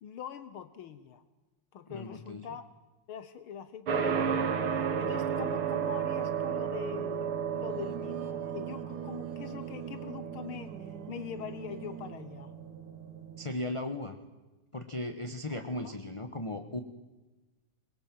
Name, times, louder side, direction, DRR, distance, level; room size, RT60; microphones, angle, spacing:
voice 1, 0.0-1.2 1.7-2.6 3.1-12.5 15.5-16.0, left 8 dB, 75° left, 12 dB, 1.8 m, -44 dB
voice 2, 1.9-2.5 13.4-14.2 14.7-16.8, left 1 dB, 20° left, 7 dB, 0.9 m, -37 dB
sound 1, 3.9-13.5, right 7 dB, 75° right, 2.6 m, -34 dB
Singing, 7.4-12.3, right 9 dB, 55° right, 1.3 m, -45 dB
22.5 x 22.0 x 7.6 m, 1.1 s
omnidirectional pair, 2.4 m